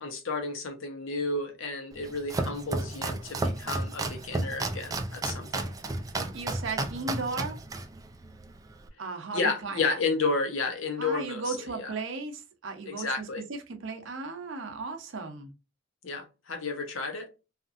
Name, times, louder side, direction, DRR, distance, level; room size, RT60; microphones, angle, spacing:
voice 1, 0.0-5.7 9.3-11.9 12.9-13.4 16.0-17.3, left 3 dB, 65° left, 0.8 m, -32 dB
Domestic sounds home sounds, 1.9-8.9, right 2 dB, 15° right, 0.3 m, -33 dB
voice 2, 6.2-7.6 9.0-10.0 11.0-13.2 13.5-15.5, right 4 dB, 65° right, 0.7 m, -36 dB
2.9 x 2.5 x 2.4 m
head